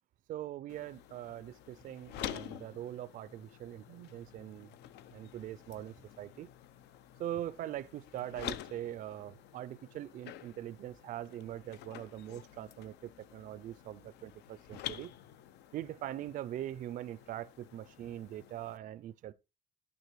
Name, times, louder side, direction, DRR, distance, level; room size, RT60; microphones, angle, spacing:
voice 1, 0.3-4.7 5.1-6.5 7.2-15.1 15.7-19.3, right 12 dB, 50° right, 0.4 m, -42 dB
sound 1, 0.7-18.8, left 11 dB, 80° left, 0.6 m, -49 dB
9.6 x 9.3 x 3.1 m
cardioid pair, 110°, 17 cm